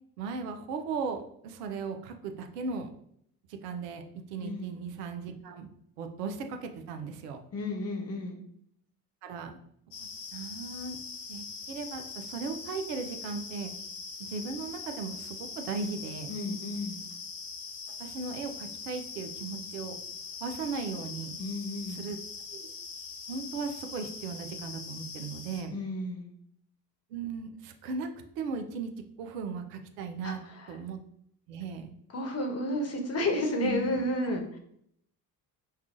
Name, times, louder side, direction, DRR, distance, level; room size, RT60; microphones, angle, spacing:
voice 1, 0.2-2.9 3.5-4.0 4.3-5.7 6.0-7.4 9.2-9.6 10.3-11.0 11.3-13.7 14.2-16.3 18.0-20.0 20.4-21.4 21.9-22.2 22.5-22.7 23.3-25.7 27.1-28.1 28.4-28.9 29.2-30.4 30.7-31.0 31.5-31.9 33.6-34.3, right 4 dB, 80° right, 6 dB, 0.6 m, -37 dB
voice 2, 7.5-8.4 16.3-17.0 21.4-22.0 25.7-26.3 30.2-30.8 32.1-34.6, left 1 dB, 30° left, 3 dB, 1.0 m, -32 dB
sound 1, 9.9-25.6, left 5 dB, 60° left, 1.0 m, -42 dB
5.3 x 2.3 x 2.5 m, 0.69 s
hypercardioid pair, 55°, 47 cm